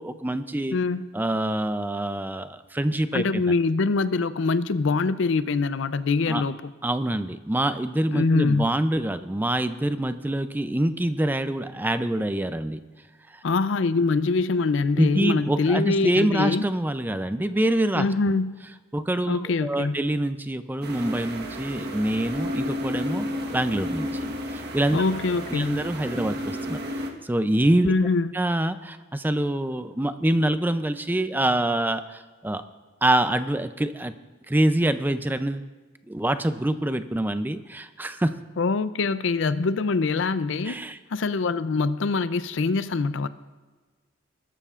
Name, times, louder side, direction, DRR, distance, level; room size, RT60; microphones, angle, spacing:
voice 1, 0.0-0.8 1.1-3.5 6.3-6.4 6.8-12.8 15.0-18.1 18.9-24.1 24.5-25.0 25.5-27.9 28.3-32.6 33.0-34.1 34.5-35.7 36.1-38.4 40.7-41.0, right 1 dB, 10° right, 10 dB, 0.4 m, -25 dB
voice 2, 0.7-1.1 3.1-6.7 8.1-8.7 13.4-16.6 17.9-18.5 19.3-20.0 24.9-25.8 27.8-28.3 38.6-40.8 41.1-43.3, left 3 dB, 65° left, 14 dB, 0.5 m, -24 dB
sound 1, 20.8-27.1, equal, 55° right, 1.3 m, -32 dB
20.5 x 12.5 x 2.5 m, 1.3 s
head